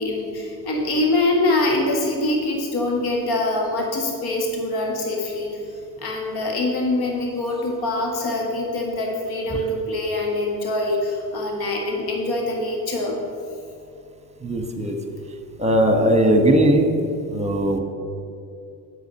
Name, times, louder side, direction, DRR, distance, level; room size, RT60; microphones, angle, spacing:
voice 1, 0.0-5.6 6.0-13.2, left 2 dB, 50° left, 0 dB, 1.8 m, -24 dB
voice 2, 14.4-15.0 15.6-16.9 17.3-17.8, right 1 dB, 15° right, 6 dB, 1.3 m, -18 dB
8.1 x 6.4 x 6.5 m, 2.5 s
hypercardioid pair, 50°, 49 cm